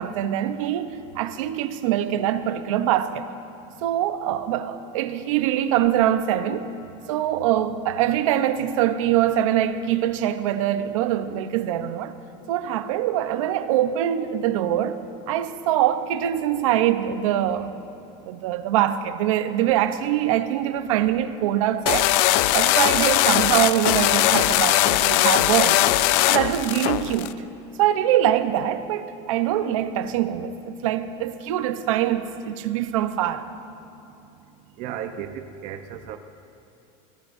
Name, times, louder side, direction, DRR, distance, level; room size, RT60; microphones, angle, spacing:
voice 1, 0.0-3.3 3.8-6.7 7.1-12.1 12.5-15.0 15.3-17.7 18.2-22.1 22.5-25.9 26.3-27.4 27.8-33.5, right 11 dB, 85° right, 0.9 m, -23 dB
sound 1, 21.9-27.3, left 15 dB, 60° left, 0.5 m, -20 dB
voice 2, 34.8-36.2, right 9 dB, 50° right, 0.8 m, -34 dB
24.0 x 18.0 x 2.7 m
supercardioid pair, 145°, 16 cm